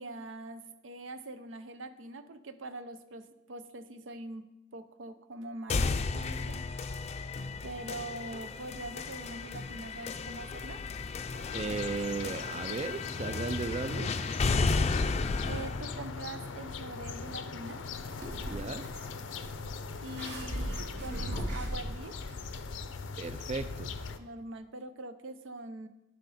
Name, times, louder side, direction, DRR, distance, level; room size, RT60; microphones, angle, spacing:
voice 1, 0.0-4.4 4.7-6.6 7.6-10.8 15.5-17.8 20.0-22.2 24.2-25.9, right 2 dB, 85° right, 11 dB, 0.6 m, -43 dB
sound 1, 5.7-17.7, left 4 dB, 35° left, 0.4 m, -34 dB
sound 2, 11.3-24.2, left 5 dB, 85° left, 0.6 m, -42 dB
voice 2, 11.5-14.2 18.5-18.9 23.2-23.9, right 4 dB, 35° right, 11 dB, 0.4 m, -35 dB
sound 3, 17.7-22.8, equal, 65° right, 2.8 m, -39 dB
12.5 x 5.2 x 4.1 m, 0.95 s
head